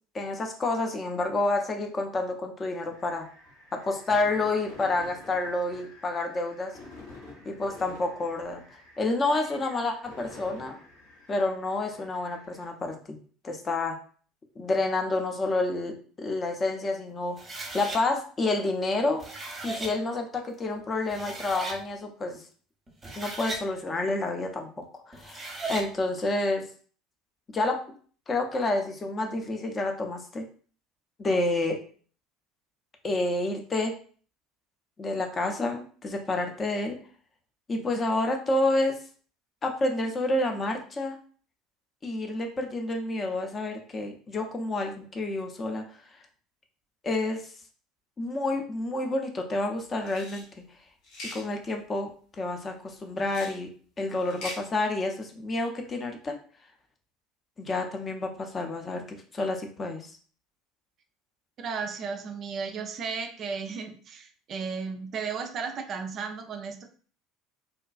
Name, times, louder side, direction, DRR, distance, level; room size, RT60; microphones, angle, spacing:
voice 1, 0.1-3.3 3.7-6.7 7.4-8.6 9.0-10.8 11.3-13.2 13.4-14.0 14.6-17.4 17.7-19.3 19.6-22.4 23.2-24.7 25.1-25.4 25.7-26.6 27.5-27.9 28.3-30.5 31.2-31.8 33.0-34.0 35.0-37.0 37.7-38.9 39.6-41.2 42.0-45.8 47.0-47.5 48.2-50.4 51.3-52.1 52.4-53.7 54.0-56.3 57.6-60.1, left 2 dB, 30° left, 4 dB, 0.5 m, -29 dB
sound 1, 2.9-12.7, left 2 dB, 85° left, 1.1 m, -49 dB
sound 2, 17.4-18.0 19.0-19.9 20.7-20.8 21.1-21.8 22.9-23.6 25.1-25.9, right 2 dB, 25° right, 0.7 m, -37 dB
sound 3, 50.0-50.4 51.0-51.4 53.2-53.6 54.2-54.6, left 1 dB, 55° left, 0.8 m, -40 dB
voice 2, 61.6-66.9, right 5 dB, 45° right, 6 dB, 0.3 m, -34 dB
2.5 x 2.2 x 2.3 m, 0.43 s
figure-of-eight pair, 70°, 0 cm